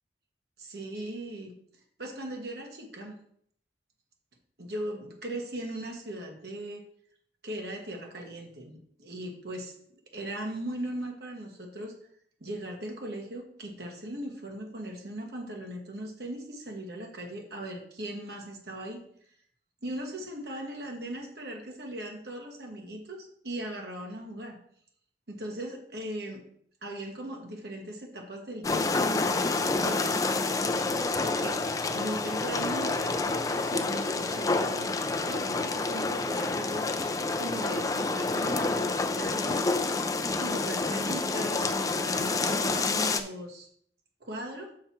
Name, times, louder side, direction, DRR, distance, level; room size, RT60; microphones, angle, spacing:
voice 1, 0.6-1.5 2.0-3.2 4.6-6.8 7.4-9.8 10.1-12.0 12.4-19.0 19.8-24.6 25.3-26.4 26.8-30.2 31.2-31.6 31.9-36.9 37.4-39.6 40.4-43.7 44.2-44.7, right 1 dB, 65° right, 2 dB, 1.4 m, -38 dB
sound 1, 28.6-43.2, left 3 dB, 20° left, 0.4 m, -28 dB
6.6 x 5.7 x 4.5 m, 0.63 s
head